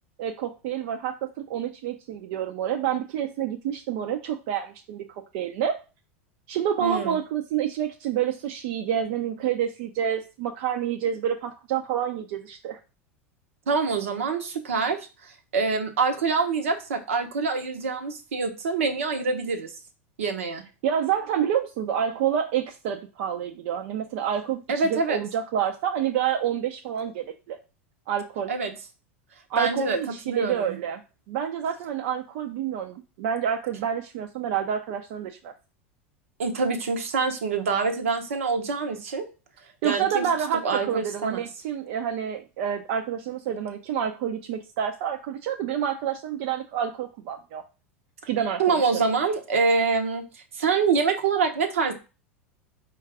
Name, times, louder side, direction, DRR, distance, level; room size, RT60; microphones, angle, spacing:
voice 1, 0.2-5.8 6.5-12.8 20.8-27.6 28.1-28.5 29.5-31.0 31.3-35.5 39.8-47.6 48.3-49.0, right 9 dB, 65° right, 4 dB, 0.5 m, -28 dB
voice 2, 6.8-7.2 13.7-19.7 20.2-20.6 24.7-25.2 28.5-28.7 29.6-30.0 30.3-30.8 36.4-39.3 39.8-40.3 40.6-41.4 48.6-51.9, right 4 dB, 85° right, 5 dB, 0.8 m, -25 dB
4.6 x 2.4 x 4.6 m, 0.31 s
hypercardioid pair, 100°, 7 cm